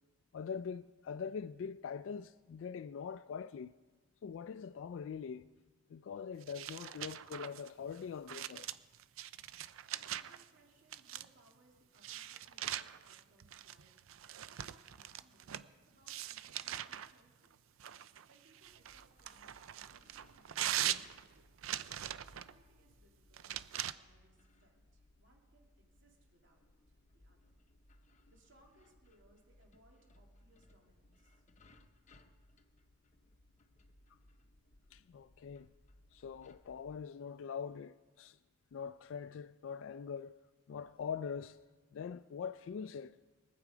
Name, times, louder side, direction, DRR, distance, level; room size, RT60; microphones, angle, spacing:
voice 1, 0.3-3.7 4.2-5.5 5.9-8.7 34.1-34.2 34.9-35.7 36.1-38.4 38.7-40.4 40.7-41.6 41.9-43.2, left 6 dB, 70° left, 0.3 m, -43 dB
sound 1, 6.4-10.5 10.9-11.5 12.0-15.7 16.1-17.1 17.8-22.5 23.3-23.9, right 12 dB, 85° right, 0.4 m, -42 dB
voice 2, 10.0-17.6 18.0-20.5 20.9-21.6 22.4-26.6 26.9-27.6 28.3-31.4, right 1 dB, 65° right, 2.7 m, -69 dB
sound 2, 18.6-37.0, left 1 dB, 35° left, 0.7 m, -66 dB
23.0 x 8.4 x 4.9 m
head